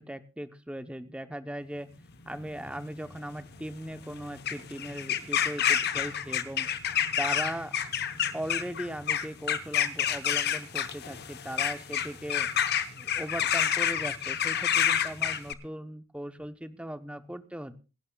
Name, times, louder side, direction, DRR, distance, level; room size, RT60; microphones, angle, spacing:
voice 1, 0.0-1.9 2.3-6.9 7.2-7.7 8.3-12.5 13.0-17.8, right 1 dB, 5° right, 10 dB, 0.8 m, -38 dB
sound 1, 2.1-15.5, left 9 dB, 45° left, 0.9 m, -29 dB
27.0 x 11.5 x 2.3 m, 0.31 s
head